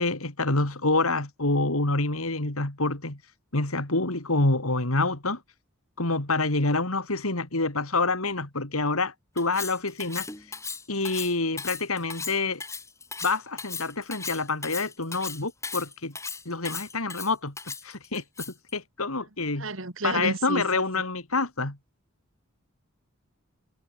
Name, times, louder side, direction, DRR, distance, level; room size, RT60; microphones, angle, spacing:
voice 1, 0.0-5.4 6.0-10.6 10.9-12.6 13.2-16.1 16.5-17.5 17.8-18.2 18.7-19.7 20.0-21.8, left 3 dB, 90° left, 3.5 m, -27 dB
Cutlery silverware, 9.4-18.7, left 5 dB, 15° left, 2.0 m, -37 dB
voice 2, 19.6-20.8, right 2 dB, 65° right, 3.0 m, -31 dB
head